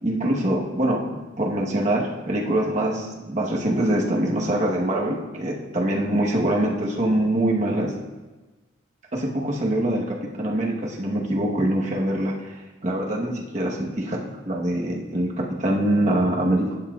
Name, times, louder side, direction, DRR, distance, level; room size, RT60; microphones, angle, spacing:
voice 1, 0.0-7.9 9.1-12.6 12.8-16.8, right 1 dB, 35° right, -2 dB, 1.1 m, -24 dB
11.5 x 7.2 x 2.4 m, 1.2 s
head